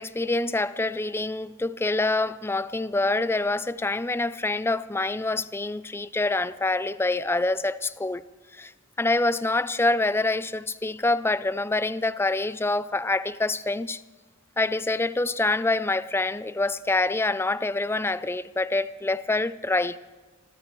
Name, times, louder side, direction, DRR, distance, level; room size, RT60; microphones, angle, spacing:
voice 1, 0.0-8.2 8.6-8.7 9.0-14.0 14.6-20.0, left 2 dB, 10° left, 0.4 m, -26 dB
25.0 x 16.0 x 3.1 m
head